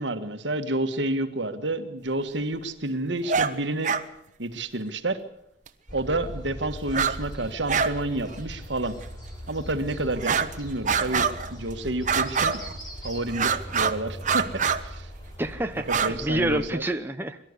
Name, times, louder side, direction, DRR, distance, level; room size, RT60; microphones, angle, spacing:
voice 1, 0.0-3.9 4.4-5.2 5.9-9.0 9.5-12.6 13.0-15.1 15.9-16.8, right 2 dB, 70° right, 8 dB, 1.7 m, -29 dB
sound 1, 3.3-3.5 3.8-4.0 5.7-5.8 6.9-7.2 7.4-7.9 8.2-8.4 9.0-9.1 10.2-10.5 10.9-11.5 12.1-12.8 13.3-14.0 14.2-14.8 15.8-16.1, right 6 dB, 40° right, 1.2 m, -25 dB
sound 2, 5.9-16.7, equal, 20° left, 4.7 m, -40 dB
voice 2, 15.4-17.4, right 1 dB, 10° right, 6 dB, 0.8 m, -28 dB
23.5 x 12.5 x 9.8 m, 0.77 s
head